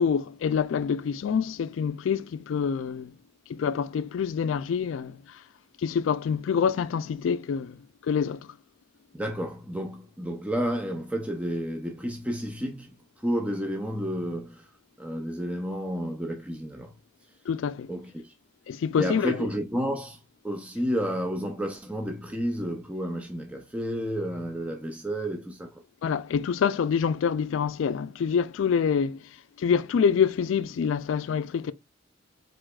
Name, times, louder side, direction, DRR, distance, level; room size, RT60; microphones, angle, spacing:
voice 1, 0.0-3.1 3.5-5.4 5.8-7.8 8.0-8.4 17.5-17.9 18.7-19.4 26.0-29.2 29.6-31.7, left 6 dB, 85° left, 0.3 m, -26 dB
voice 2, 9.1-14.7 15.0-16.9 17.9-18.3 19.0-20.2 20.4-25.8, equal, 5° right, 0.5 m, -31 dB
4.8 x 4.0 x 2.3 m
head